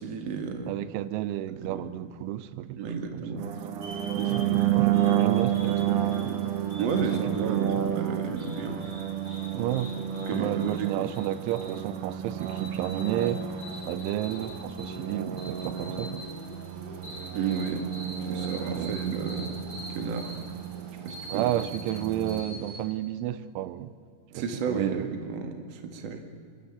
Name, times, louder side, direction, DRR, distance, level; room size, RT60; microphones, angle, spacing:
voice 1, 0.0-0.8 1.5-1.9 2.8-3.4 4.2-4.5 6.8-8.8 10.3-10.9 17.3-17.9 18.2-19.5 19.9-20.3 21.0-21.5 24.3-26.2, right 5 dB, 50° right, 5 dB, 2.3 m, -32 dB
voice 2, 0.7-3.4 4.3-6.6 7.1-7.8 9.5-13.4 13.8-16.2 18.8-19.0 21.3-23.9 24.4-25.1, right 13 dB, 90° right, 15 dB, 3.2 m, -32 dB
sound 1, 3.4-22.4, right 10 dB, 75° right, 1.9 m, -31 dB
sound 2, 3.8-22.8, equal, 20° right, 6.3 m, -45 dB
29.0 x 13.0 x 8.7 m, 2.1 s
omnidirectional pair, 5.3 m